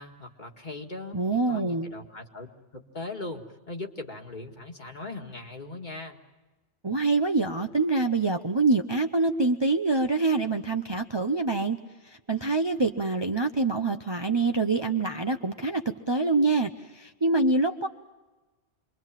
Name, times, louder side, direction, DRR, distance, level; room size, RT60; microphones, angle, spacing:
voice 1, 0.0-1.2 1.5-6.2, left 2 dB, 40° left, 2 dB, 2.1 m, -39 dB
voice 2, 1.1-1.9 6.8-11.8 12.0-17.9, right 3 dB, 25° right, 5 dB, 0.7 m, -25 dB
27.0 x 22.5 x 7.5 m, 1.2 s
omnidirectional pair, 1.2 m